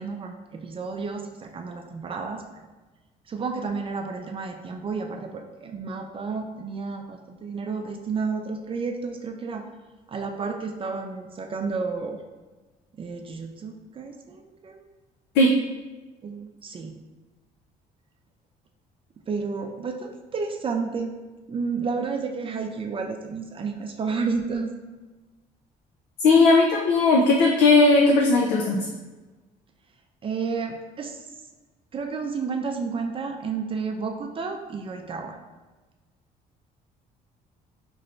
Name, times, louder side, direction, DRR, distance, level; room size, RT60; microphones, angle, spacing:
voice 1, 0.0-2.4 3.3-9.7 10.1-12.2 13.0-14.8 16.2-16.9 19.3-21.2 21.5-24.7 30.2-31.2 31.9-35.4, right 4 dB, 30° right, 4 dB, 0.4 m, -31 dB
voice 2, 26.2-28.9, left 3 dB, 90° left, -1 dB, 0.5 m, -17 dB
3.0 x 2.5 x 4.3 m, 1.2 s
cardioid pair, 110°, 17 cm